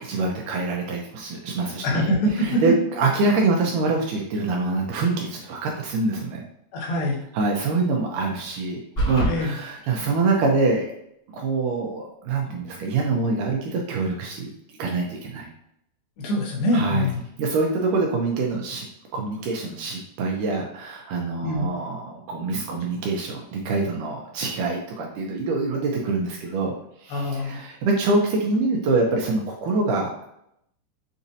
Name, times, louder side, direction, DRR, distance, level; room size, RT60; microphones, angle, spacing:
voice 1, 0.0-6.4 7.3-8.8 9.1-10.9 11.3-14.5 14.8-15.5 16.7-17.1 17.4-18.9 19.1-26.7 27.0-30.2, right 3 dB, 80° right, 0 dB, 2.0 m, -25 dB
voice 2, 1.8-2.6 6.7-7.2 9.3-9.5 16.2-17.2 21.4-21.7 27.1-27.6, left 1 dB, 80° left, -2 dB, 2.9 m, -24 dB
sound 1, 9.0-9.4, right 1 dB, 45° left, 0.9 m, -22 dB
7.1 x 2.7 x 2.6 m, 0.77 s
omnidirectional pair, 4.2 m